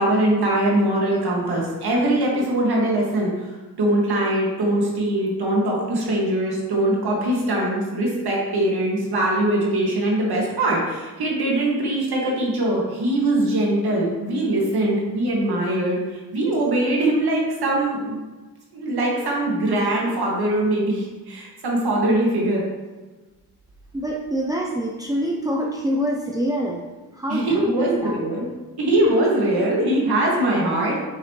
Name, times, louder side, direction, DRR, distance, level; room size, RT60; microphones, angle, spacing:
voice 1, 0.0-18.2 18.7-22.6 27.3-28.5 28.8-31.0, right 1 dB, 80° right, -3 dB, 2.1 m, -22 dB
voice 2, 23.9-28.2, equal, 10° right, -1 dB, 0.7 m, -26 dB
8.0 x 5.7 x 3.2 m, 1.2 s
cardioid pair, 90°, 37 cm